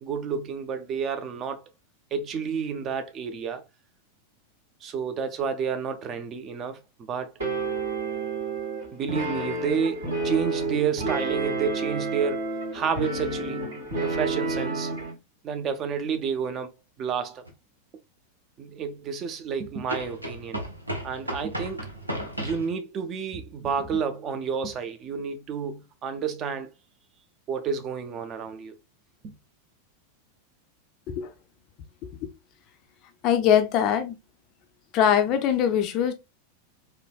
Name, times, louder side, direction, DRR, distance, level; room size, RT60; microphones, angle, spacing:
voice 1, 0.0-1.7 2.1-3.6 4.8-7.3 8.9-12.5 12.7-13.7 14.0-14.9 15.4-16.7 17.0-17.4 18.6-20.6 21.0-21.9 22.4-26.7 27.5-28.7 29.2-29.3, right 6 dB, 30° right, 0.5 m, -30 dB
sound 1, 7.4-15.1, right 3 dB, 65° right, 1.6 m, -30 dB
sound 2, 17.4-17.5 19.9-22.7, equal, 85° right, 0.6 m, -34 dB
voice 2, 33.2-34.2 34.9-36.1, left 9 dB, 40° left, 0.4 m, -22 dB
3.3 x 2.1 x 2.3 m
figure-of-eight pair, 90°, 0 cm